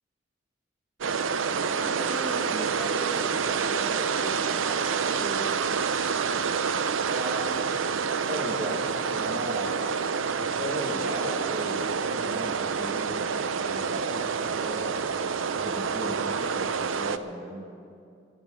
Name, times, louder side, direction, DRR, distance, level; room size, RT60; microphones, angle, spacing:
sound 1, 1.0-17.2, right 6 dB, 85° right, 0.6 m, -28 dB
voice 1, 1.7-5.6, equal, 5° right, 1 dB, 1.6 m, -39 dB
voice 2, 7.1-7.6 8.2-9.7 10.4-13.4 13.6-14.9 15.6-17.6, equal, 35° right, -3 dB, 1.4 m, -36 dB
15.5 x 8.1 x 9.4 m, 2.4 s
head